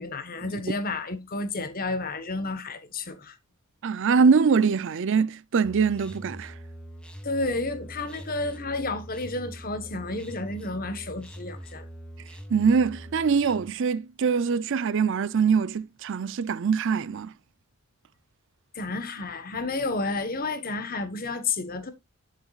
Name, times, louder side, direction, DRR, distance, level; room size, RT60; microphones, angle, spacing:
voice 1, 0.0-3.4 7.2-11.9 18.7-21.9, left 3 dB, 40° left, 1.2 m, -31 dB
voice 2, 3.8-6.5 12.5-17.3, right 5 dB, 55° right, 0.5 m, -23 dB
sound 1, 5.6-13.7, equal, 5° left, 1.3 m, -43 dB
10.0 x 7.4 x 2.4 m
head